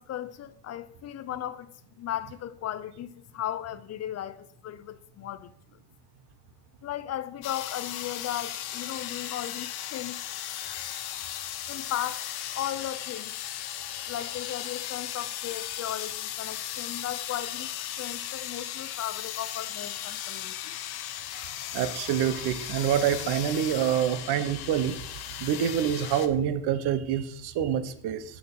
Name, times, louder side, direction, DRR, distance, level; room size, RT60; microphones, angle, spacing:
voice 1, 0.0-5.5 6.8-10.2 11.7-13.3 14.1-20.8, left 11 dB, 40° left, 0.5 m, -36 dB
sound 1, 7.4-26.3, left 12 dB, 70° left, 0.9 m, -36 dB
voice 2, 21.3-25.0 25.4-28.4, right 9 dB, 75° right, 1.0 m, -27 dB
7.0 x 6.4 x 6.0 m
cardioid pair, 140°, 40 cm